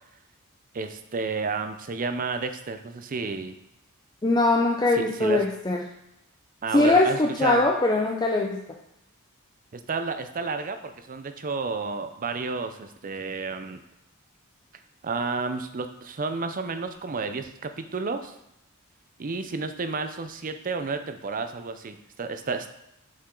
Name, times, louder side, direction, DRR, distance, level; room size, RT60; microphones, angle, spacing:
voice 1, 0.7-3.5 5.0-5.4 6.6-7.6 9.7-13.8 15.0-18.3 19.2-22.7, right 4 dB, 40° right, 8 dB, 0.5 m, -31 dB
voice 2, 4.2-5.8 6.7-8.6, left 2 dB, 20° left, 1 dB, 0.4 m, -22 dB
6.8 x 5.6 x 3.8 m, 0.85 s
head